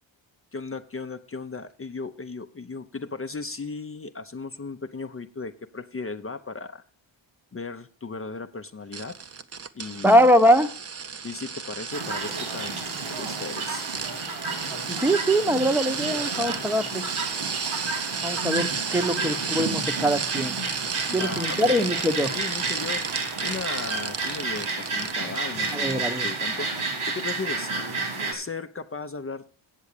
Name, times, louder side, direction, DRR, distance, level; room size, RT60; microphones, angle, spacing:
voice 1, 0.5-6.8 7.5-9.2 9.7-10.3 11.2-13.9 21.1-21.8 22.3-23.0 23.4-26.7 27.1-27.7 28.3-29.4, left 4 dB, 30° left, 8 dB, 0.6 m, -36 dB
sound 1, 8.9-25.4 25.6-25.9 26.3-26.4, right 5 dB, 30° right, 0.6 m, -33 dB
voice 2, 10.0-10.7 14.9-17.0 18.2-20.6 21.1-22.3 25.7-26.3, equal, 5° right, 9 dB, 0.8 m, -22 dB
sound 2, 11.9-28.3, right 3 dB, 90° right, 2.5 m, -31 dB
8.3 x 7.2 x 6.6 m, 0.43 s
cardioid pair, 85°, 48 cm